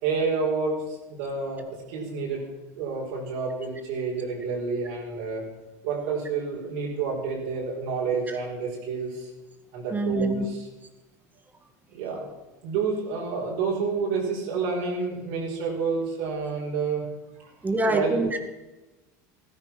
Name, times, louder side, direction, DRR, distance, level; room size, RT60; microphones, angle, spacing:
voice 1, 0.0-2.4 2.7-5.4 5.8-9.3 9.7-10.6 11.9-12.3 12.6-17.1 17.4-17.5 17.8-18.2, right 4 dB, 75° right, -4 dB, 5.2 m, -29 dB
voice 2, 9.9-10.4 17.6-18.4, right 2 dB, 20° right, 7 dB, 2.0 m, -25 dB
14.5 x 13.5 x 6.1 m, 1.1 s
supercardioid pair, 100°, 9 cm